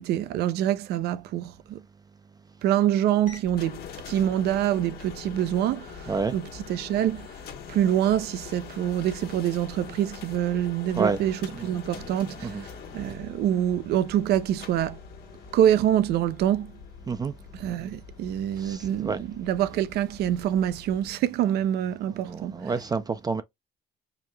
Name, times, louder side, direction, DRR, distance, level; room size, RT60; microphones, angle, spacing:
voice 1, 0.0-1.8 2.6-7.3 7.7-15.0 15.5-16.7 17.5-22.7, right 11 dB, 75° right, 0.5 m, -26 dB
sound 1, 3.3-21.1, left 6 dB, 65° left, 1.3 m, -44 dB
voice 2, 18.6-19.2 22.2-23.4, right 4 dB, 25° right, 0.4 m, -28 dB
4.8 x 2.1 x 3.3 m
cardioid pair, 110°, 17 cm